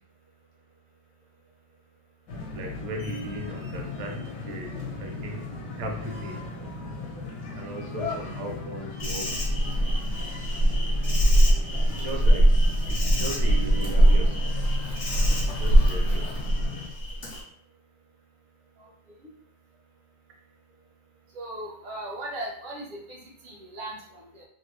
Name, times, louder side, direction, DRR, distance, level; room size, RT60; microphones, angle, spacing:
sound 1, 2.3-16.9, left 4 dB, 70° left, 1.4 m, -37 dB
voice 1, 2.5-5.4 5.8-6.3 7.6-9.5 11.9-14.5 15.6-16.3, right 1 dB, 60° right, 1 dB, 1.0 m, -37 dB
Insect, 9.0-17.4, right 1 dB, 50° left, 0.9 m, -22 dB
voice 2, 21.3-24.4, right 1 dB, 45° right, -2 dB, 0.7 m, -38 dB
3.4 x 2.2 x 3.1 m, 0.67 s
omnidirectional pair, 1.9 m